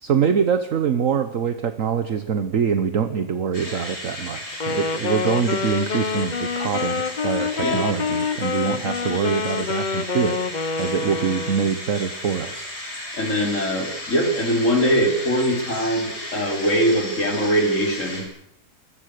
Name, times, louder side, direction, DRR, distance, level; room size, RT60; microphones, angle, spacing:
voice 1, 0.0-10.4 10.8-12.7, right 7 dB, 55° right, 10 dB, 1.4 m, -24 dB
sound 1, 3.5-18.2, left 1 dB, 85° left, 7.0 m, -35 dB
Wind instrument woodwind instrument, 4.5-11.8, left 5 dB, 35° left, 1.0 m, -27 dB
voice 2, 13.2-18.2, equal, 50° left, 3 dB, 5.0 m, -22 dB
25.5 x 21.5 x 6.7 m, 0.74 s
omnidirectional pair, 1.7 m